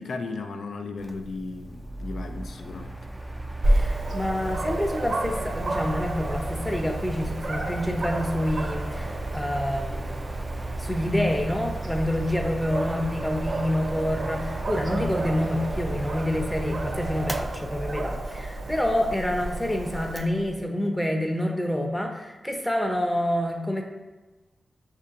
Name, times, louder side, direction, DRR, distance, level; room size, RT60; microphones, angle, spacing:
voice 1, 0.0-3.0, left 3 dB, 75° left, 6 dB, 0.4 m, -35 dB
Mechanical fan, 1.0-20.6, right 2 dB, 15° right, 0.3 m, -36 dB
Dog, 3.6-20.2, right 1 dB, 65° right, 0.6 m, -31 dB
voice 2, 3.7-10.1 10.8-23.8, left 1 dB, 10° left, 3 dB, 0.7 m, -27 dB
6.1 x 2.7 x 2.5 m, 1.2 s
cardioid pair, 55°, 0 cm